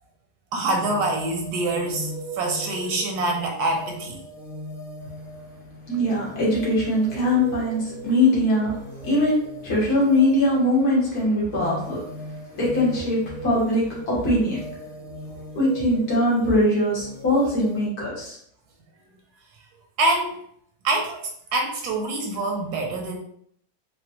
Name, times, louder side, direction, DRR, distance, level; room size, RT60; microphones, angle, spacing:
voice 1, 0.5-4.2 15.3-15.4 20.0-20.4 20.8-23.2, right 2 dB, 80° right, 2 dB, 1.1 m, -25 dB
sound 1, 0.7-17.9, right 1 dB, 85° left, 2.0 m, -39 dB
voice 2, 5.9-8.7 9.0-12.0 12.6-14.6 15.6-18.4, left 1 dB, 70° left, -6 dB, 1.9 m, -21 dB
4.2 x 2.1 x 2.9 m, 0.65 s
omnidirectional pair, 1.7 m